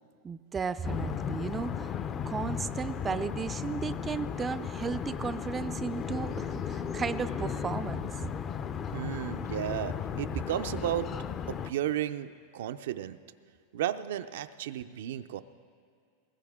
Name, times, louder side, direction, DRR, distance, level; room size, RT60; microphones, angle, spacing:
voice 1, 0.2-1.9 2.3-8.3, right 5 dB, 20° right, 13 dB, 0.4 m, -35 dB
sound 1, 0.8-11.7, left 7 dB, 30° left, 0.6 m, -35 dB
voice 2, 8.9-11.1 11.5-13.2 13.7-15.4, right 12 dB, 80° right, 10 dB, 0.5 m, -33 dB
20.5 x 17.0 x 3.6 m, 2.3 s
supercardioid pair, 130°, 0 cm